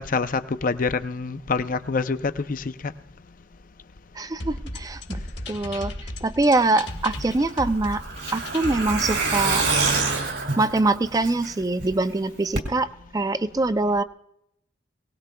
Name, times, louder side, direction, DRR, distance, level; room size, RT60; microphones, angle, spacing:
voice 1, 0.0-2.9, left 4 dB, 45° left, 11 dB, 0.5 m, -26 dB
voice 2, 4.2-5.2 5.5-5.9 6.2-8.0 8.3-9.6 10.6-14.0, right 2 dB, 20° right, 12 dB, 0.4 m, -23 dB
sound 1, 4.4-10.0, left 2 dB, 60° left, 1.5 m, -36 dB
Truck, 7.2-11.8 12.1-12.2 12.6-12.7, right 4 dB, 65° right, 2.8 m, -26 dB
23.0 x 18.0 x 2.3 m, 0.76 s
head